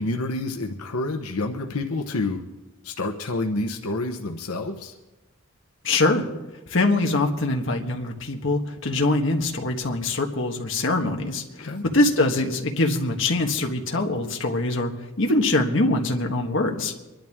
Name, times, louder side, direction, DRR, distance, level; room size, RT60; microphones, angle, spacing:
voice 1, 0.0-2.4 2.8-4.9 11.6-11.8, left 2 dB, 85° left, 3 dB, 1.0 m, -28 dB
voice 2, 5.8-6.2 6.7-11.7 11.9-14.9 15.2-16.9, left 2 dB, 55° left, 2 dB, 1.4 m, -23 dB
24.0 x 11.5 x 3.6 m, 1.0 s
head